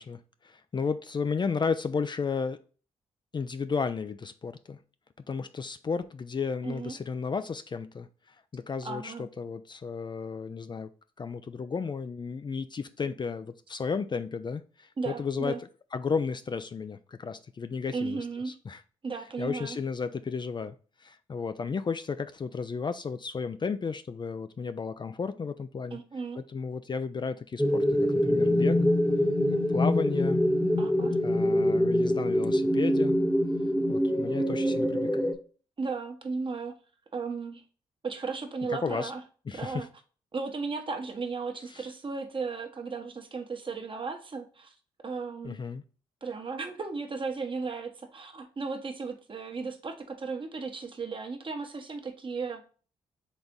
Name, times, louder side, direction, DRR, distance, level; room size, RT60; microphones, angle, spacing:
voice 1, 0.0-2.6 3.3-4.8 5.3-8.1 8.5-10.9 11.2-18.8 19.4-20.7 21.0-26.0 26.4-28.8 29.7-30.4 31.2-33.2 33.9-35.3 38.7-39.1 39.5-39.9 41.7-41.9 45.4-45.8, left 5 dB, 35° left, 11 dB, 0.4 m, -33 dB
voice 2, 6.6-7.0 8.8-9.3 15.0-15.6 17.9-18.6 19.0-19.8 25.9-26.4 30.8-31.2 35.8-36.8 37.1-37.6 38.0-39.2 39.5-39.9 40.3-44.7 45.0-45.6 46.2-52.6, right 4 dB, 40° right, 5 dB, 1.1 m, -35 dB
sound 1, 27.6-35.3, equal, 5° left, 1.0 m, -25 dB
4.1 x 3.4 x 3.8 m, 0.38 s
supercardioid pair, 50°, 14 cm